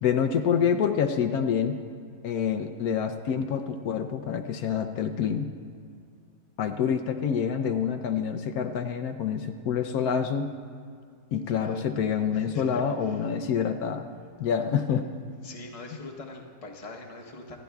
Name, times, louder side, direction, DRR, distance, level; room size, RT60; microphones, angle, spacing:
voice 1, 0.0-1.7 2.2-5.5 6.6-10.5 11.3-14.1 14.4-15.0, left 7 dB, 75° left, 6 dB, 1.1 m, -27 dB
voice 2, 11.5-11.9 12.3-13.4 14.9-15.0 15.4-17.6, left 3 dB, 25° left, 0 dB, 1.0 m, -42 dB
27.5 x 10.5 x 2.3 m, 2.3 s
omnidirectional pair, 1.6 m